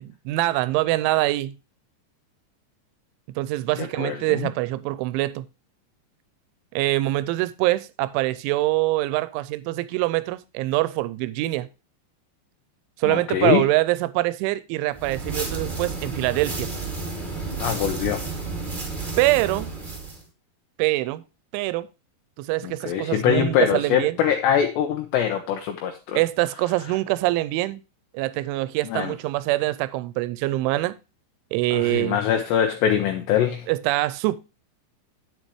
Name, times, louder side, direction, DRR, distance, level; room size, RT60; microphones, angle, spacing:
voice 1, 0.0-1.6 3.4-5.5 6.7-11.7 13.0-16.7 19.2-19.7 20.8-21.2 21.5-21.9 22.4-24.2 26.2-27.8 28.1-31.0 31.5-32.2 33.7-34.4, right 18 dB, 85° right, 3.0 m, -24 dB
voice 2, 3.8-4.5 13.0-13.6 17.6-18.2 22.6-26.2 28.8-29.1 31.7-33.7, left 9 dB, 75° left, 2.9 m, -23 dB
sound 1, 14.9-20.2, right 3 dB, 25° right, 1.0 m, -31 dB
9.7 x 8.6 x 3.1 m
omnidirectional pair, 5.5 m